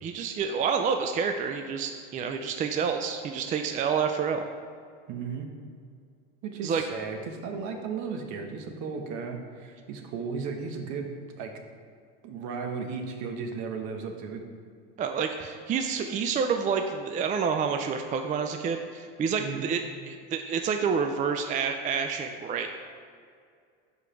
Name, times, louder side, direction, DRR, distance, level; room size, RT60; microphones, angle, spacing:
voice 1, 0.0-4.4 6.6-6.8 15.0-22.7, right 6 dB, 25° right, 6 dB, 0.4 m, -28 dB
voice 2, 5.1-5.5 6.4-11.1 11.4-11.5 12.2-14.4 19.4-19.7, right 5 dB, 55° right, 4 dB, 1.1 m, -35 dB
5.0 x 4.8 x 5.7 m, 2.2 s
hypercardioid pair, 90°, 35 cm